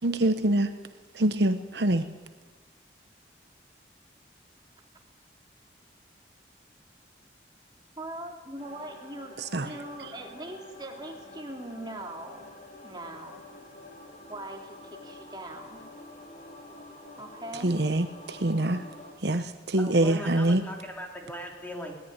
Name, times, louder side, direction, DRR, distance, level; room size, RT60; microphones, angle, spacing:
voice 1, 0.0-0.7 1.1-2.1 9.4-9.7 17.6-18.8 19.2-20.7, right 1 dB, 70° right, 10 dB, 1.0 m, -25 dB
voice 2, 8.0-12.5 12.8-13.4 14.3-15.8 17.2-17.8, right 1 dB, 25° right, 1 dB, 3.2 m, -41 dB
sound 1, 8.6-19.1, left 2 dB, 40° left, 3.8 m, -48 dB
voice 3, 19.8-21.9, equal, 10° left, 1 dB, 3.6 m, -39 dB
22.0 x 17.5 x 9.7 m, 1.3 s
head